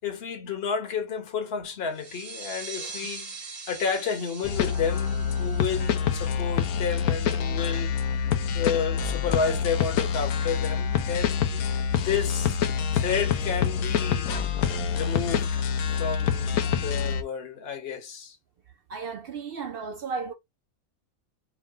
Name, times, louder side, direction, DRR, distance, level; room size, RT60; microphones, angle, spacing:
voice 1, 0.0-8.3 8.5-11.4 12.0-12.7 12.9-14.3 14.9-15.7 16.0-18.4, left 6 dB, 50° left, 1.2 m, -31 dB
sound 1, 1.9-7.3, right 4 dB, 90° right, 1.6 m, -42 dB
sound 2, 4.4-17.2, left 7 dB, 90° left, 1.1 m, -26 dB
voice 2, 16.4-16.9 18.9-20.3, right 5 dB, 65° right, 0.6 m, -36 dB
4.8 x 2.2 x 3.6 m
omnidirectional pair, 1.5 m